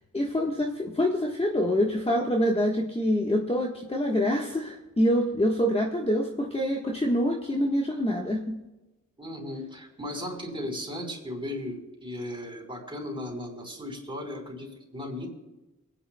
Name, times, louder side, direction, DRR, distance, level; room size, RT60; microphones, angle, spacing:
voice 1, 0.1-8.5, equal, 20° left, 0 dB, 1.3 m, -26 dB
voice 2, 9.2-15.3, left 1 dB, 15° right, 0 dB, 4.3 m, -36 dB
29.5 x 10.0 x 2.3 m, 1.0 s
cardioid pair, 70°, 31 cm